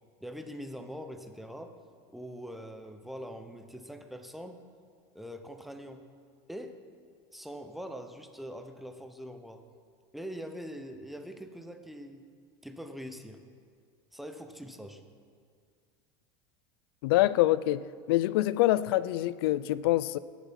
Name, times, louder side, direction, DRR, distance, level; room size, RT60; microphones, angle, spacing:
voice 1, 0.2-1.8 2.1-4.6 5.1-6.0 6.5-6.8 7.3-9.6 10.1-12.2 12.6-13.4 14.1-15.0, equal, ahead, 0.7 m, -43 dB
voice 2, 17.0-20.2, left 15 dB, 80° left, 0.4 m, -25 dB
19.0 x 7.2 x 5.8 m
supercardioid pair, 150°, 12 cm